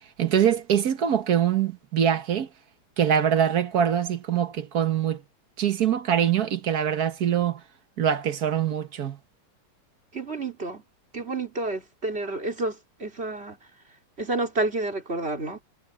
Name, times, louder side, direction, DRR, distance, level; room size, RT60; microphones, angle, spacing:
voice 1, 0.2-2.5 3.0-5.2 5.6-7.6 8.0-9.2, right 9 dB, 50° right, 1.5 m, -23 dB
voice 2, 10.1-10.8 11.1-13.6 14.2-15.6, right 2 dB, 25° right, 3.5 m, -30 dB
omnidirectional pair, 2.4 m